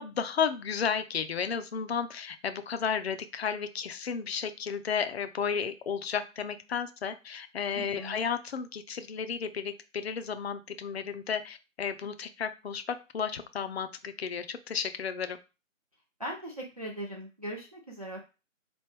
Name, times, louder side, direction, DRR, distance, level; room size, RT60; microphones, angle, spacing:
voice 1, 0.0-15.4, left 7 dB, 50° left, 10 dB, 0.5 m, -33 dB
voice 2, 7.8-8.2 16.2-18.2, right 1 dB, 30° right, -1 dB, 0.5 m, -39 dB
4.3 x 3.0 x 3.3 m, 0.30 s
figure-of-eight pair, 160°, 40 cm